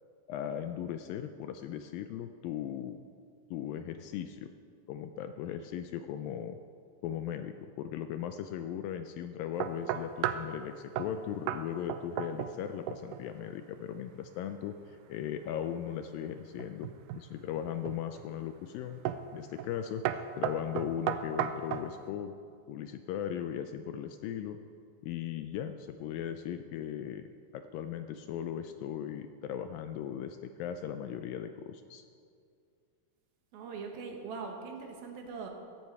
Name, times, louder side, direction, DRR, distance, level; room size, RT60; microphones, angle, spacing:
voice 1, 0.3-3.0 3.5-4.5 4.9-6.6 7.0-19.0 19.3-22.3 22.7-24.6 25.0-27.3 27.5-32.0, left 9 dB, 80° left, 8 dB, 2.1 m, -38 dB
sound 1, 9.6-10.5 11.0-11.2 11.5-11.6 11.9-12.6 12.9-13.2 16.6-17.3 17.9-18.3 19.1-19.3 19.6-19.8 20.1-21.9, right 10 dB, 90° right, 1.9 m, -34 dB
voice 2, 33.5-35.5, right 5 dB, 70° right, 2 dB, 3.3 m, -41 dB
16.0 x 15.5 x 4.7 m, 2.3 s
omnidirectional pair, 4.4 m